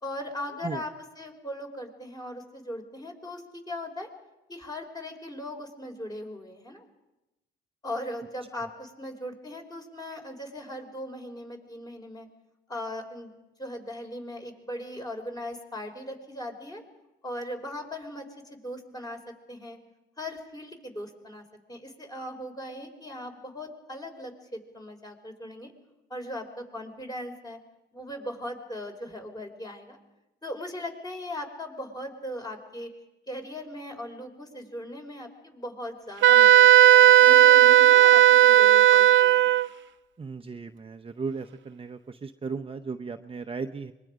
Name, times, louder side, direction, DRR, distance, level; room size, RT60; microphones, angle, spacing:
voice 1, 0.0-4.1 4.5-6.8 7.8-12.3 12.7-13.3 13.6-16.8 17.2-19.2 19.5-19.8 20.2-25.7 26.1-27.6 27.9-30.0 30.4-32.9 33.3-39.5, left 1 dB, 20° left, 3 dB, 4.3 m, -39 dB
Wind instrument woodwind instrument, 36.2-39.7, right 12 dB, 70° right, 0.6 m, -15 dB
voice 2, 40.2-43.9, right 5 dB, 30° right, 6 dB, 0.8 m, -36 dB
25.5 x 22.0 x 5.1 m, 0.96 s
cardioid pair, 90°, 20 cm